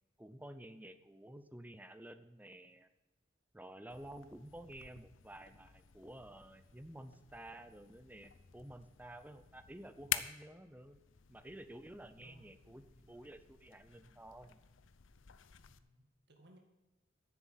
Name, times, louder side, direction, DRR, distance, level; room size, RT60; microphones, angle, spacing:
voice 1, 0.2-2.9 3.5-11.0 11.3-14.6, right 1 dB, 10° right, 11 dB, 0.6 m, -52 dB
sound 1, 3.9-15.8, left 11 dB, 90° left, 0.7 m, -48 dB
voice 2, 12.2-12.8 13.1-13.3 15.7-16.6, right 1 dB, 60° right, 3 dB, 2.2 m, -64 dB
10.5 x 7.5 x 9.2 m, 1.1 s
head